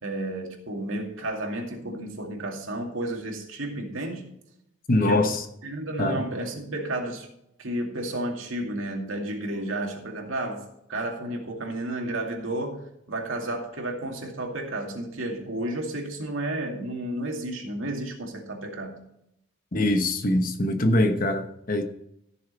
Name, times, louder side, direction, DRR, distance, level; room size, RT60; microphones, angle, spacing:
voice 1, 0.0-4.3 5.0-5.3 5.6-7.3 7.6-10.6 10.9-19.0, right 1 dB, 75° right, 2.4 m, -32 dB
voice 2, 4.9-5.4 6.0-6.3 19.7-21.8, left 1 dB, 40° left, 1.1 m, -23 dB
15.0 x 6.7 x 4.2 m
head